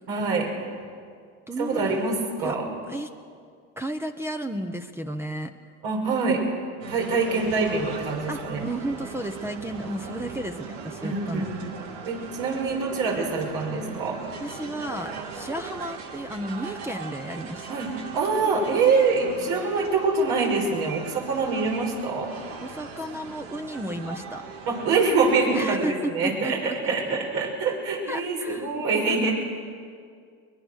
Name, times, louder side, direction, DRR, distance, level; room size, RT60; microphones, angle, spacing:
voice 1, 0.1-0.5 1.6-2.7 5.8-6.4 6.9-8.6 11.0-11.7 12.0-14.2 17.7-17.9 18.1-22.3 24.7-29.3, right 4 dB, 70° right, 0 dB, 5.8 m, -25 dB
voice 2, 1.5-2.0 2.4-2.6 2.9-3.1 3.8-5.5 8.3-11.5 14.4-17.6 22.6-24.4 25.5-25.9 26.2-27.2 28.1-28.8 29.0-29.2, right 1 dB, 5° right, 6 dB, 1.0 m, -33 dB
sound 1, 6.8-25.7, right 5 dB, 90° right, 2.4 m, -39 dB
22.5 x 21.0 x 6.5 m, 2.2 s
supercardioid pair, 100°, 37 cm